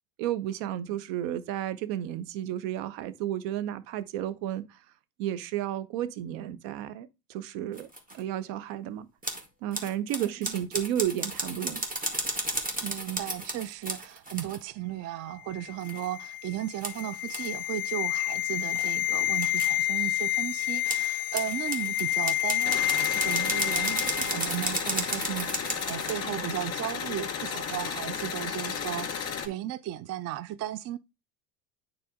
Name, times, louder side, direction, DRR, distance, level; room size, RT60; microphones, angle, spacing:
voice 1, 0.2-4.8 5.2-7.9 8.1-9.1 9.6-11.8, right 11 dB, 60° right, 1.0 m, -32 dB
sound 1, 7.7-8.2 9.2-9.5 9.7-14.6 15.8-16.1 16.8-17.0 17.3-17.5 18.7-19.8 20.9-26.1, right 1 dB, 15° right, 2.0 m, -34 dB
voice 2, 12.8-31.0, right 13 dB, 35° right, 0.4 m, -35 dB
sound 2, 15.5-24.7 25.0-25.2, left 15 dB, 50° left, 0.6 m, -29 dB
sound 3, 22.6-29.5, left 7 dB, 30° left, 2.0 m, -34 dB
9.2 x 4.3 x 3.6 m
hypercardioid pair, 75°, 49 cm